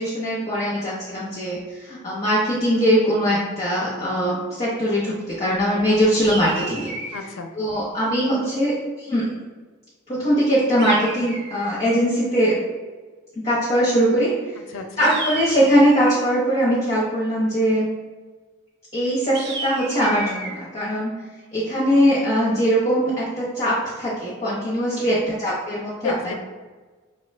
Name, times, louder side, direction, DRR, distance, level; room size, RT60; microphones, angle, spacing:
voice 1, 0.0-6.9 7.5-9.3 10.1-12.6 13.4-14.6 15.0-17.9 18.9-21.1 21.5-26.1, equal, 30° left, -8 dB, 0.9 m, -21 dB
sound 1, 6.2-7.3 10.8-11.8 15.0-16.3 19.3-20.6, right 2 dB, 50° right, 0.6 m, -33 dB
voice 2, 7.1-7.5 14.7-15.1 24.9-25.2 26.0-26.3, left 3 dB, 70° left, 6 dB, 0.4 m, -31 dB
5.3 x 2.3 x 3.2 m, 1.4 s
head